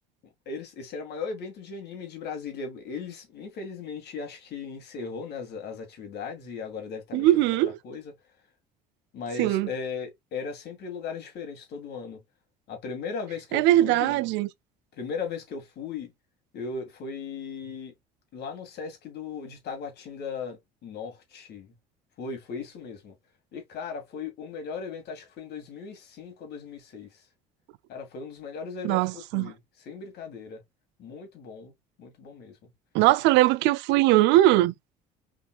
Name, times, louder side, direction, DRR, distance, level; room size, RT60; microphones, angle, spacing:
voice 1, 0.5-7.4 7.8-8.1 9.1-12.2 12.7-14.2 15.0-16.1 16.5-17.9 18.3-21.7 22.2-23.1 23.5-27.1 27.9-29.6 29.9-30.6 31.0-31.7 32.0-32.7, left 5 dB, 55° left, 2.2 m, -37 dB
voice 2, 7.1-7.8 9.4-9.7 13.5-14.5 28.8-29.5 32.9-34.7, right 15 dB, 60° right, 0.5 m, -21 dB
5.1 x 3.9 x 2.4 m
hypercardioid pair, 65°, 21 cm